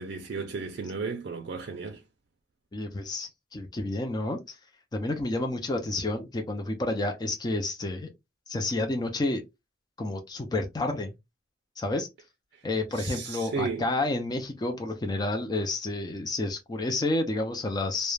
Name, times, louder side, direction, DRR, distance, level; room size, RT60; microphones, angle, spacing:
voice 1, 0.0-2.0 12.5-12.6 12.9-13.9, right 4 dB, 65° right, 0.4 m, -34 dB
voice 2, 2.7-4.6 4.9-8.1 8.5-9.4 10.0-11.1 11.8-12.1 12.6-18.1, left 2 dB, 25° left, 0.4 m, -30 dB
2.3 x 2.1 x 3.1 m
head